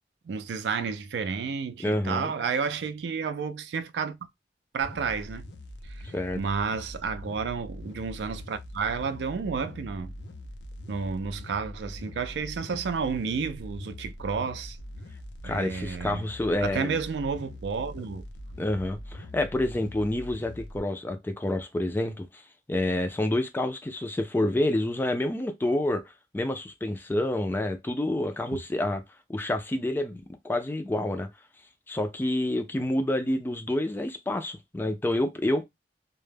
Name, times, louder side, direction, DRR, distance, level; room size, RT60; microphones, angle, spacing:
voice 1, 0.3-4.2 4.7-5.5 5.9-10.2 10.9-14.8 15.4-16.2 16.6-18.2, right 5 dB, 75° right, 0.3 m, -31 dB
voice 2, 1.8-2.3 6.1-6.4 15.4-17.0 18.6-22.4 22.7-26.0 26.3-29.0 29.3-31.3 31.9-35.7, left 1 dB, 10° left, 0.3 m, -28 dB
sound 1, 4.8-20.8, left 1 dB, 75° left, 0.5 m, -42 dB
2.1 x 2.0 x 3.2 m
head